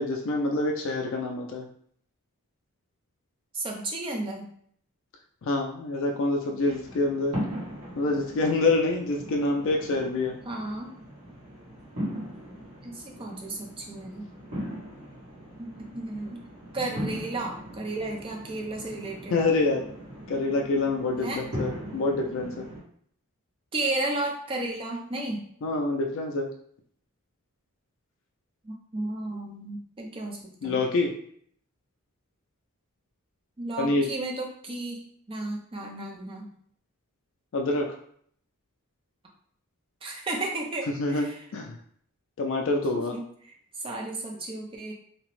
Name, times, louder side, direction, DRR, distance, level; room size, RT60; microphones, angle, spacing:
voice 1, 0.0-1.7 5.4-7.3 8.0-10.3 19.3-19.8 20.3-22.7 25.6-26.5 30.6-31.1 33.8-34.1 37.5-37.9 41.0-41.3 41.5-41.8 42.4-43.1, left 2 dB, 60° left, 1 dB, 0.3 m, -26 dB
voice 2, 3.5-4.5 10.4-10.9 12.8-14.3 15.6-16.4 16.7-19.4 21.2-21.4 23.7-25.5 28.6-30.8 33.6-36.5 40.0-41.4 43.1-44.9, right 2 dB, 25° right, 0 dB, 0.4 m, -33 dB
sound 1, 6.6-22.8, equal, 70° right, 1.1 m, -39 dB
2.8 x 2.0 x 3.0 m, 0.63 s
head